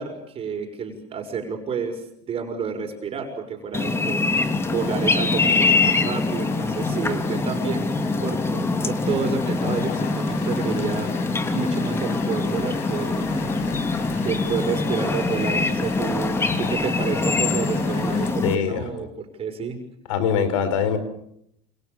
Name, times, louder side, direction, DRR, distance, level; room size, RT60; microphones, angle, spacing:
voice 1, 0.0-4.3 4.7-11.1 11.5-13.3 14.2-19.8, right 5 dB, 35° right, 5 dB, 6.2 m, -30 dB
sound 1, 3.7-18.5, left 3 dB, 15° left, 2.8 m, -24 dB
sound 2, 4.3-18.3, left 7 dB, 70° left, 7.8 m, -38 dB
voice 2, 18.4-18.9 20.1-21.0, left 7 dB, 90° left, 12 dB, 4.8 m, -23 dB
28.0 x 27.5 x 7.1 m, 0.75 s
supercardioid pair, 115°, 16 cm